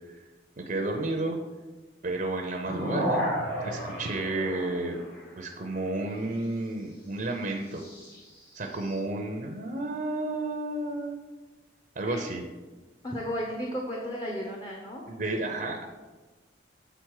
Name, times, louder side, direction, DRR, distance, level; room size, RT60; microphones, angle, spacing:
voice 1, 0.6-1.4 2.0-3.3 3.6-5.0 5.4-7.8 8.5-11.2 12.0-12.4 15.1-15.9, right 2 dB, 45° right, 3 dB, 0.6 m, -31 dB
sound 1, 2.6-5.3 7.7-9.0, equal, 60° left, 2.2 m, -32 dB
voice 2, 13.0-15.0, equal, 25° left, -1 dB, 0.8 m, -34 dB
7.9 x 3.9 x 4.8 m, 1.3 s
head